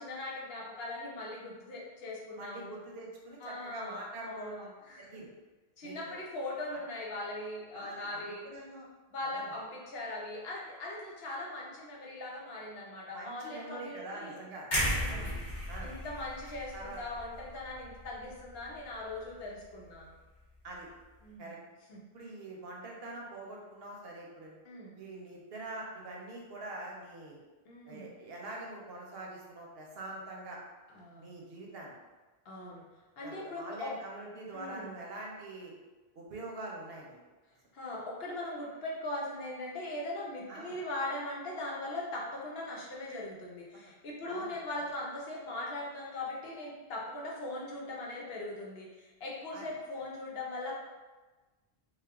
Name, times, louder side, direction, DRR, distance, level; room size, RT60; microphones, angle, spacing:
voice 1, 0.0-2.8 3.4-5.2 5.8-8.5 9.1-14.4 14.7-15.3 15.8-20.2 21.2-21.6 21.9-22.0 24.6-24.9 27.7-28.1 30.9-31.3 32.4-32.8 33.2-33.9 34.5-35.0 37.7-50.8, left 2 dB, 75° left, -3 dB, 1.0 m, -40 dB
voice 2, 2.4-4.7 5.0-5.3 5.8-6.2 7.7-8.9 9.3-9.5 13.1-14.7 15.1-15.3 15.7-15.9 16.7-17.0 20.6-20.9 21.4-21.6 22.1-24.6 25.0-27.4 27.9-30.6 31.2-32.0 33.2-35.7 36.1-37.2 40.5-40.8 43.7-43.8 44.3-44.6 49.5-49.7, right 2 dB, 75° right, -2 dB, 0.9 m, -44 dB
sound 1, 14.7-18.7 19.1-19.3, equal, 50° left, 1.0 m, -35 dB
3.2 x 2.1 x 3.4 m, 1.2 s
omnidirectional pair, 1.0 m